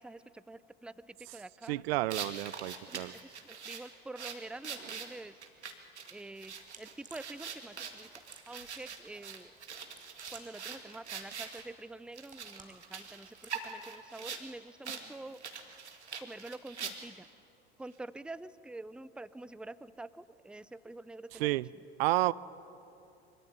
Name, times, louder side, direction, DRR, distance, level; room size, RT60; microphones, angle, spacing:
voice 1, 0.0-1.8 2.9-5.4 6.1-8.1 8.5-9.5 10.3-15.4 16.2-17.3 17.8-21.6, right 2 dB, 5° right, 16 dB, 0.7 m, -47 dB
voice 2, 1.7-3.1 21.4-21.7 22.0-22.3, right 19 dB, 65° right, 20 dB, 0.7 m, -30 dB
sound 1, 2.1-11.6 12.1-14.5 14.8-15.0 15.3-17.3, right 6 dB, 90° right, 2.1 m, -43 dB
sound 2, 6.4-13.6, right 4 dB, 25° right, 4.8 m, -59 dB
25.0 x 24.5 x 9.7 m, 2.7 s
hypercardioid pair, 75°, 33 cm